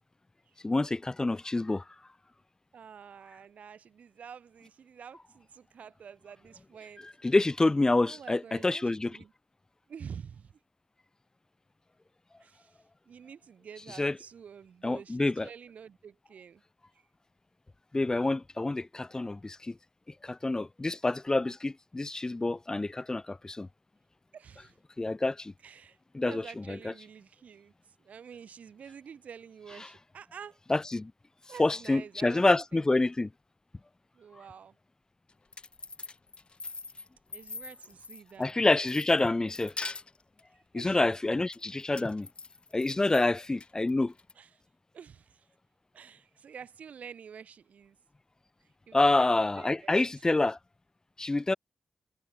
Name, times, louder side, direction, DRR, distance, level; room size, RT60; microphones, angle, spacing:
voice 1, 0.6-1.8 7.2-9.1 14.0-14.1 14.8-15.5 17.9-19.7 20.2-23.7 25.0-25.5 26.1-26.9 30.7-31.1 31.6-33.3 38.4-39.7 40.7-42.3 42.7-44.1 48.9-50.6 51.2-51.5, left 2 dB, 25° left, 0.7 m, -27 dB
voice 2, 2.7-7.1 8.0-9.3 9.9-10.6 12.4-16.6 16.9-17.0 24.3-24.8 25.6-27.7 28.0-30.6 31.5-33.0 34.1-34.8 37.3-38.5 40.7-41.1 43.1-43.3 44.3-44.6 44.9-45.5 45.9-48.0 48.9-49.9, right 7 dB, 70° right, 1.4 m, -48 dB
sound 1, 35.3-38.5 38.9-40.4 41.5-43.2 43.6-44.3, left 4 dB, 45° left, 1.5 m, -43 dB
supercardioid pair, 45°, 3 cm